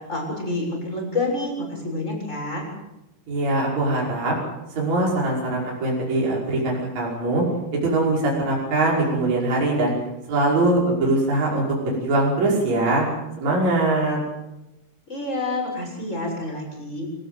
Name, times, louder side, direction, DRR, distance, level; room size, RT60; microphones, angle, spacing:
voice 1, 0.0-2.7 15.1-17.1, left 2 dB, 15° left, 0 dB, 7.5 m, -28 dB
voice 2, 3.3-4.4 4.7-7.4 7.7-9.9 10.3-13.1 13.4-14.2, right 2 dB, 40° right, -4 dB, 6.6 m, -22 dB
25.5 x 18.0 x 8.2 m, 0.94 s
omnidirectional pair, 4.9 m